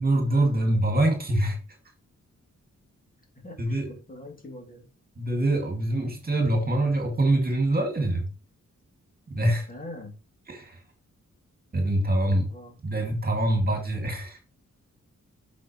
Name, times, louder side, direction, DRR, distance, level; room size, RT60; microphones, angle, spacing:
voice 1, 0.0-1.6 3.6-4.0 5.2-8.3 9.3-9.7 10.5-10.8 11.7-12.5 12.8-14.4, right 1 dB, 30° right, 2.1 m, -24 dB
voice 2, 3.3-4.9 9.7-10.2 12.2-12.7, left 2 dB, 30° left, 2.6 m, -43 dB
7.7 x 6.3 x 3.0 m
wide cardioid pair, 130°, 29 cm